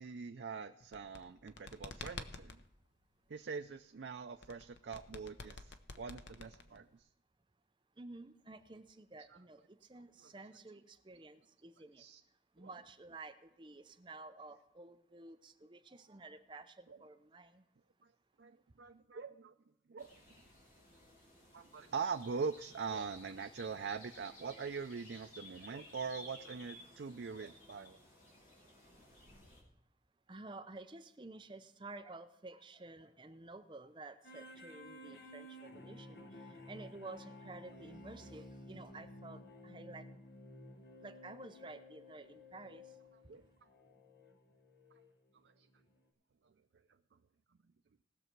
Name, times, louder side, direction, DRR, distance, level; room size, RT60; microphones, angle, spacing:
voice 1, 0.0-2.6 3.3-7.1 9.3-9.4 10.2-10.3 12.0-12.2 12.6-12.7 16.9-17.0 18.4-19.5 19.9-20.1 21.5-28.0 43.3-43.5 45.4-45.7 46.4-46.5, right 5 dB, 80° right, 7 dB, 0.4 m, -43 dB
sound 1, 0.8-2.6 4.4-7.0, left 4 dB, 85° left, 0.8 m, -48 dB
voice 2, 8.0-12.0 12.5-17.7 30.3-40.1 41.0-43.0 43.3-43.4, right 2 dB, 25° right, 8 dB, 0.6 m, -52 dB
sound 2, 20.0-29.6, left 1 dB, 45° left, 2.8 m, -57 dB
sound 3, 34.2-45.1 45.8-45.9, left 1 dB, 65° left, 1.3 m, -54 dB
19.0 x 6.7 x 4.5 m, 0.88 s
head